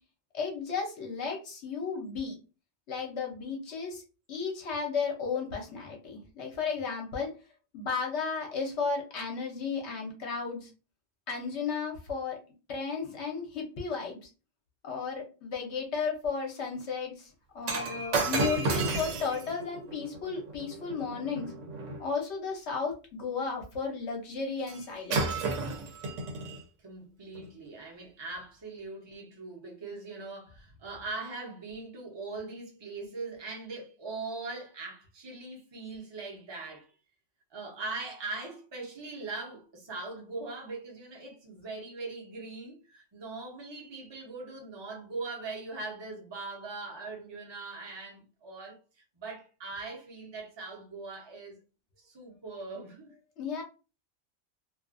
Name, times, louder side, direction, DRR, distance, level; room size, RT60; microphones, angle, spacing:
voice 1, 0.3-2.4 2.9-4.0 4.3-7.3 7.7-10.7 11.3-12.4 12.7-14.3 14.8-21.5 22.0-25.4 53.4-53.6, left 5 dB, 70° left, 1.0 m, -34 dB
Shatter, 17.6-22.0 24.7-24.8 25.1-26.6 27.3-27.5, right 3 dB, 85° right, 1.0 m, -32 dB
voice 2, 26.8-36.9 37.5-48.8 49.2-51.6 52.0-53.1, right 3 dB, 25° right, 0.7 m, -41 dB
2.5 x 2.4 x 2.4 m
omnidirectional pair, 1.2 m